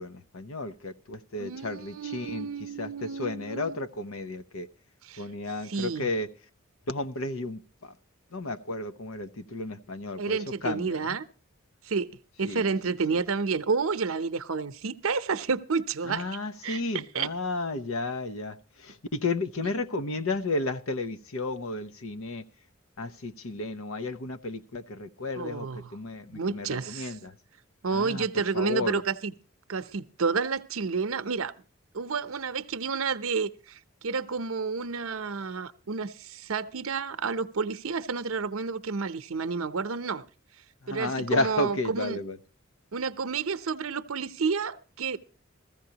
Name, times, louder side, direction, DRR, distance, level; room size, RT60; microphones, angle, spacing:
voice 1, 0.0-4.7 5.2-6.3 6.9-8.0 8.3-11.2 12.4-12.6 13.1-13.2 16.0-22.4 23.0-27.4 27.9-29.0 40.8-42.4, left 2 dB, 85° left, 0.8 m, -33 dB
voice 2, 1.4-3.8 5.0-5.3 5.7-6.1 10.2-11.2 11.8-12.1 12.4-16.3 16.6-17.3 25.4-25.9 26.3-27.2 27.8-29.3 29.7-31.5 31.9-40.2 40.9-42.2 42.9-45.2, right 5 dB, 85° right, 0.7 m, -30 dB
15.5 x 15.0 x 2.9 m
head